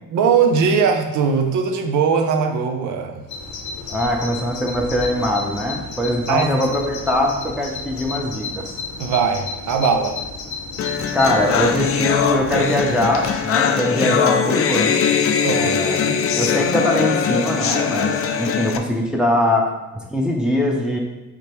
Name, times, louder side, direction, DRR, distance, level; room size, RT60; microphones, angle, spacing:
voice 1, 0.1-3.2 6.3-6.5 9.0-10.2 15.4-16.2, right 6 dB, 75° right, 5 dB, 0.6 m, -20 dB
Bird vocalization bird call bird song, 3.3-13.4, left 4 dB, 75° left, 0.8 m, -33 dB
voice 2, 3.9-8.7 11.1-15.0 15.5-21.0, left 1 dB, 5° right, -1 dB, 0.6 m, -22 dB
sound 1, 10.8-18.8, left 7 dB, 50° left, 0.4 m, -21 dB
5.0 x 3.3 x 3.1 m, 1.0 s
cardioid pair, 90°, 30 cm